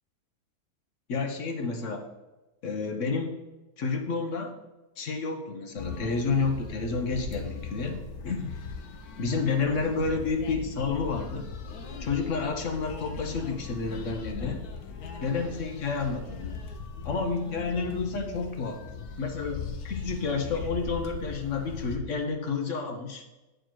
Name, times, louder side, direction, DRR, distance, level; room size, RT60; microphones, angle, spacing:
voice 1, 1.1-2.0 2.6-3.3 3.8-4.5 5.0-8.5 9.2-11.5 12.0-14.6 15.2-16.6 17.0-18.8 19.2-23.2, left 4 dB, 55° left, 4 dB, 1.1 m, -30 dB
sound 1, 5.8-22.0, left 5 dB, 75° left, 1.3 m, -39 dB
9.1 x 4.4 x 4.6 m, 1.1 s
omnidirectional pair, 1.6 m